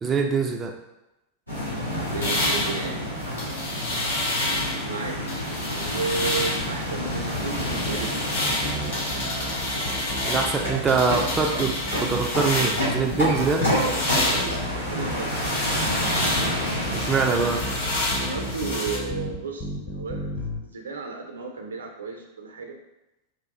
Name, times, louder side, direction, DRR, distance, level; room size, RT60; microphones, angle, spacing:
voice 1, 0.0-0.7 10.3-13.7 16.9-17.6, right 4 dB, 20° right, 1 dB, 0.3 m, -24 dB
sound 1, 1.5-18.6, equal, 90° left, 1.0 m, -29 dB
voice 2, 2.0-3.0 4.8-5.2 5.4-8.3 13.8-15.6 18.2-22.7, right 4 dB, 70° right, 2 dB, 0.5 m, -33 dB
sound 2, 2.2-4.9 5.3-6.7 7.1-13.0 13.3-19.0, left 1 dB, 65° left, 1.2 m, -29 dB
sound 3, 5.8-20.6, left 1 dB, 25° left, 0.6 m, -34 dB
3.0 x 2.3 x 3.7 m, 0.93 s
figure-of-eight pair, 90°, 0 cm